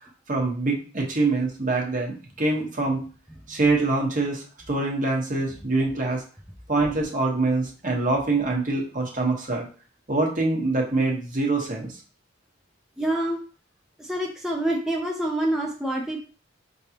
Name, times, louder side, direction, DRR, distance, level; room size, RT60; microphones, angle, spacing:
voice 1, 0.3-3.0 3.5-6.2 6.7-9.7 10.1-12.0, right 3 dB, 45° right, -1 dB, 1.2 m, -25 dB
voice 2, 13.0-13.4 14.0-16.2, right 1 dB, 5° right, -1 dB, 0.5 m, -26 dB
5.4 x 3.4 x 2.9 m, 0.38 s
head